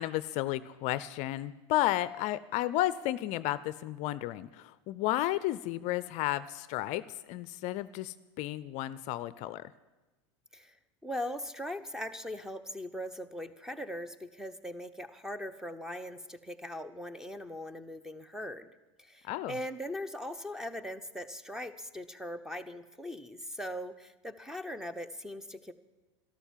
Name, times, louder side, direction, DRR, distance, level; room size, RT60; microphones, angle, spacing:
voice 1, 0.0-9.7 19.2-19.6, left 15 dB, 50° left, 16 dB, 0.5 m, -33 dB
voice 2, 11.0-18.7 19.0-25.7, equal, 5° right, 13 dB, 0.8 m, -40 dB
12.5 x 12.5 x 7.4 m, 1.1 s
hypercardioid pair, 90°, 16 cm